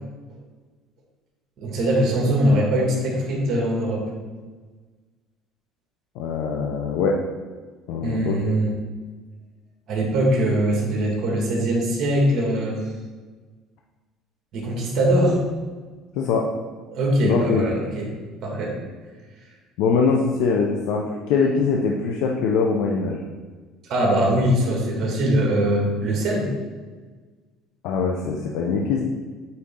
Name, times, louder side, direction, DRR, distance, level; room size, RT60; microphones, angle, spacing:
voice 1, 1.6-4.0 8.0-8.7 9.9-12.8 14.5-15.4 16.9-18.1 18.4-18.7 23.9-26.5, right 1 dB, 50° right, -2 dB, 2.1 m, -21 dB
voice 2, 6.2-7.2 7.9-8.5 16.2-16.5 17.2-17.6 19.8-23.2 27.8-29.0, left 5 dB, 75° left, 0 dB, 0.7 m, -22 dB
8.6 x 4.1 x 3.7 m, 1.4 s
cardioid pair, 120°, 0 cm